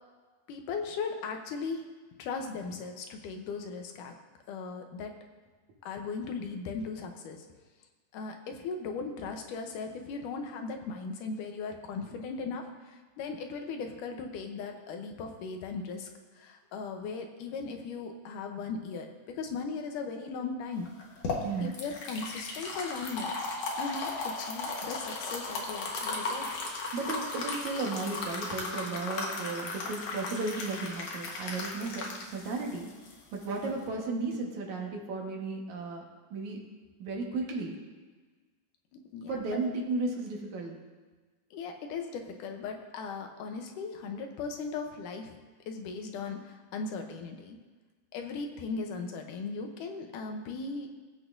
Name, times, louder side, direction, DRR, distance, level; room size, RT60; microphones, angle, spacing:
voice 1, 0.5-1.9 2.2-4.1 4.5-5.2 5.8-7.5 8.1-20.9 21.6-26.5 39.1-39.6 41.5-45.3 45.7-47.6 48.1-50.9, left 4 dB, 80° left, 4 dB, 2.4 m, -38 dB
sound 1, 20.9-33.8, left 3 dB, 60° left, 2.3 m, -36 dB
voice 2, 21.4-21.8 26.9-32.9 33.3-36.0 36.3-36.6 37.0-37.7 39.3-40.8, right 3 dB, 65° right, 0 dB, 2.7 m, -34 dB
19.5 x 8.2 x 2.6 m, 1.4 s
omnidirectional pair, 3.8 m